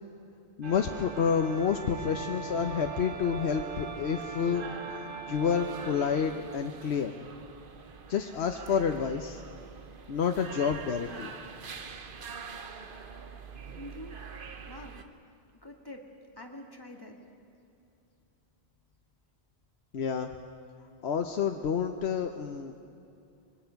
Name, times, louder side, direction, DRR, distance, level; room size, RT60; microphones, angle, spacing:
voice 1, 0.6-4.6 5.3-7.1 8.1-9.4 10.1-11.3 19.9-20.3 21.0-22.7, left 7 dB, 80° left, 5 dB, 1.1 m, -29 dB
sound 1, 0.6-15.0, right 5 dB, 55° right, 1.1 m, -42 dB
voice 2, 13.8-14.2 14.7-15.0 15.6-16.1 16.4-17.2, left 1 dB, 20° left, 2 dB, 2.0 m, -45 dB
25.0 x 22.0 x 5.8 m, 2.7 s
omnidirectional pair, 1.1 m